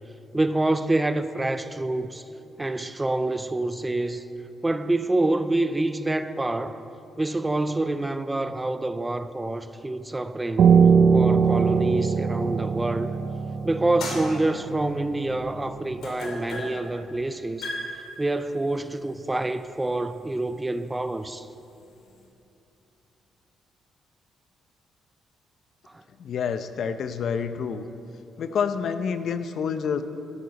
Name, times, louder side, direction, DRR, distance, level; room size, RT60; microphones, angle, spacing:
voice 1, 0.3-2.2 2.6-4.2 4.6-6.8 7.2-10.8 11.1-13.1 13.6-17.7 18.2-21.5 25.9-26.0, right 2 dB, 15° right, 11 dB, 0.5 m, -27 dB
Piano, 10.6-15.9, right 6 dB, 65° right, 0.6 m, -21 dB
sound 1, 11.4-13.3 13.7-22.3, left 2 dB, 90° left, 2.6 m, -39 dB
voice 2, 26.2-27.8 28.4-30.0, left 6 dB, 65° left, 10 dB, 0.6 m, -28 dB
13.0 x 12.0 x 4.1 m, 2.8 s
cardioid pair, 90°, 0 cm